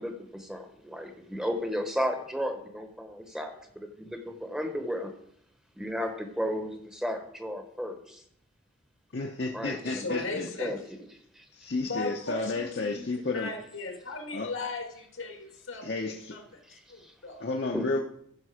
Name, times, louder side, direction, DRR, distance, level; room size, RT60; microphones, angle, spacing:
voice 1, 0.0-5.1 5.8-8.2 9.5-10.2 10.6-10.8 11.4-11.5 17.0-17.1 17.7-18.0, equal, 5° right, 5 dB, 0.9 m, -34 dB
voice 2, 9.1-10.5 11.5-13.5 14.3-14.5 15.8-16.3 17.4-18.0, left 3 dB, 55° left, 1 dB, 0.7 m, -32 dB
voice 3, 9.9-10.8 11.8-17.4, left 3 dB, 85° left, 3 dB, 1.9 m, -37 dB
15.0 x 5.3 x 5.0 m, 0.71 s
head